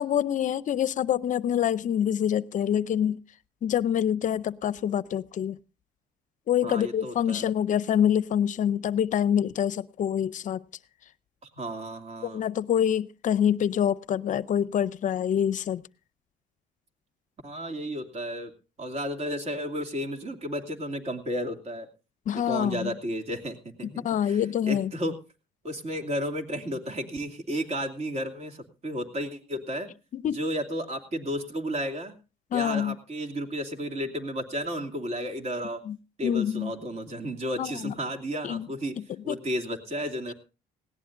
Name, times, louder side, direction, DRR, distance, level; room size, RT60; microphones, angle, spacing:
voice 1, 0.0-3.2 3.6-5.6 6.5-10.6 12.2-15.8 22.3-22.9 23.8-24.9 30.1-30.4 32.5-33.0 35.8-36.0 36.2-36.7 37.6-37.9 38.4-38.7 39.1-39.4, left 9 dB, 50° left, 0.6 m, -26 dB
voice 2, 6.6-7.5 11.4-12.4 17.4-18.5 18.8-21.9 22.3-25.1 25.6-29.9 30.3-32.2 32.5-35.8 36.2-38.9 39.2-40.3, equal, 40° right, 2.8 m, -33 dB
19.0 x 17.5 x 2.6 m
cardioid pair, 110°, 17 cm